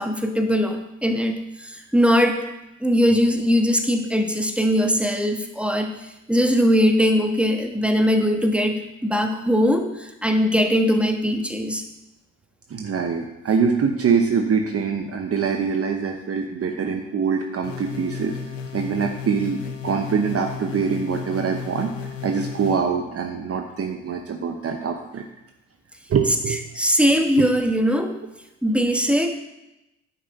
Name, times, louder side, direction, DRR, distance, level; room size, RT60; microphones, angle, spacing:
voice 1, 0.0-2.5 2.8-5.9 6.3-11.8 26.7-28.2 28.6-29.3, equal, 5° right, 5 dB, 1.4 m, -20 dB
voice 2, 12.7-18.4 18.7-21.9 22.2-25.2 26.1-26.6, right 6 dB, 40° right, 4 dB, 1.0 m, -24 dB
sound 1, 17.6-22.8, left 6 dB, 90° left, 0.8 m, -34 dB
9.7 x 7.4 x 4.2 m, 0.93 s
hypercardioid pair, 50°, 37 cm